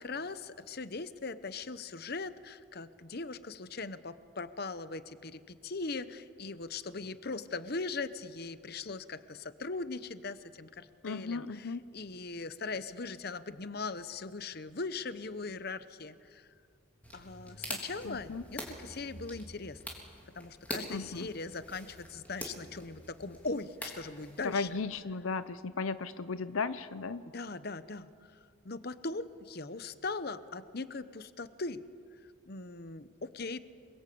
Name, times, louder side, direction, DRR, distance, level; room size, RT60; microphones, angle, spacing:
voice 1, 0.0-16.5 17.1-19.8 20.3-24.7 27.3-28.4 28.6-31.8 32.2-33.6, left 3 dB, 45° left, 13 dB, 0.9 m, -40 dB
voice 2, 11.0-11.8 18.0-18.4 20.9-21.3 24.4-27.2, left 4 dB, 75° left, 14 dB, 0.7 m, -35 dB
sound 1, 17.0-24.8, left 1 dB, 5° left, 3.5 m, -45 dB
28.5 x 22.5 x 8.5 m, 2.3 s
head